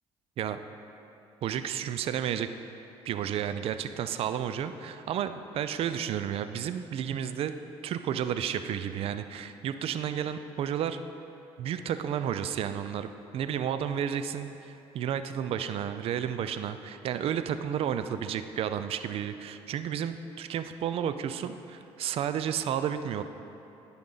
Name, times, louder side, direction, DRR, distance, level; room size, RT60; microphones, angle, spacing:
voice 1, 1.4-2.5 3.1-7.5 7.8-11.0 11.6-23.2, right 9 dB, 60° right, 10 dB, 0.4 m, -32 dB
14.5 x 5.3 x 3.9 m, 2.9 s
supercardioid pair, 85°, 11 cm